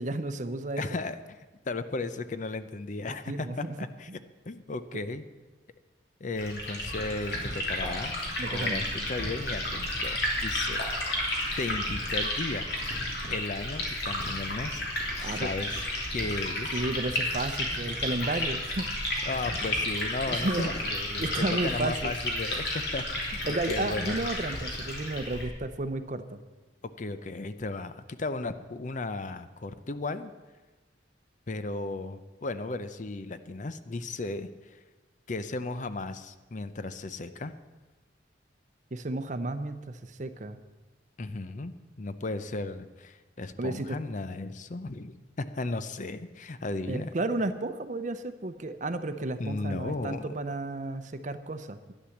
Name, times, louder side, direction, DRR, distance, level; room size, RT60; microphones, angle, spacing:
voice 1, 0.0-0.9 3.3-4.2 8.4-9.1 15.2-15.5 16.7-18.9 20.3-20.7 21.2-22.1 23.5-26.4 38.9-40.6 43.6-44.0 46.9-51.9, right 2 dB, 40° right, 10 dB, 0.7 m, -33 dB
voice 2, 0.8-1.4 1.7-3.5 3.8-4.1 4.5-5.2 6.2-8.2 8.5-11.2 11.6-12.7 13.3-14.8 15.2-15.8 16.1-16.7 19.2-24.2 27.0-30.3 31.5-34.8 35.3-37.5 41.2-47.1 49.4-50.2, left 3 dB, 40° left, 12 dB, 0.6 m, -35 dB
Liquid, 6.4-25.5, left 1 dB, 60° left, 3.2 m, -32 dB
11.5 x 10.0 x 7.2 m, 1.2 s
head